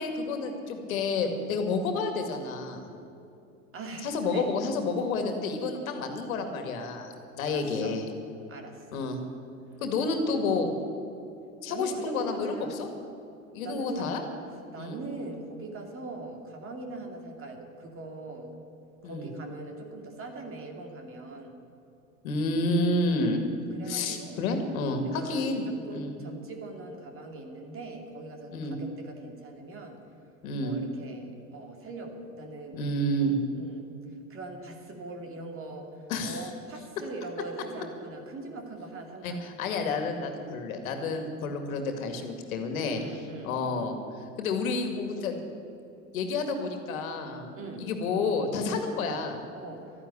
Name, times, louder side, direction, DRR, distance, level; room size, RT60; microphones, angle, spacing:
voice 1, 0.0-2.8 4.0-8.1 8.9-9.2 9.8-10.7 11.6-12.9 13.5-14.2 14.8-15.0 19.0-19.3 22.2-23.4 23.9-25.6 25.9-26.1 28.5-28.8 30.4-30.8 32.7-33.4 36.1-36.5 39.2-43.0 43.4-44.0 44.4-45.3 46.1-47.5 47.8-49.4, left 3 dB, 70° left, 6 dB, 2.3 m, -30 dB
voice 2, 3.7-4.5 7.5-8.0 8.5-9.0 9.7-9.8 11.7-12.8 13.6-14.1 14.7-18.5 19.0-21.5 23.1-24.4 25.0-30.0 30.6-32.8 33.6-33.9 34.3-35.9 36.2-39.4 40.1-40.3 43.0-43.6 47.5-47.9 49.5-49.8, right 2 dB, 30° right, 4 dB, 2.5 m, -41 dB
13.0 x 9.9 x 9.8 m, 2.7 s
hypercardioid pair, 105°, 43 cm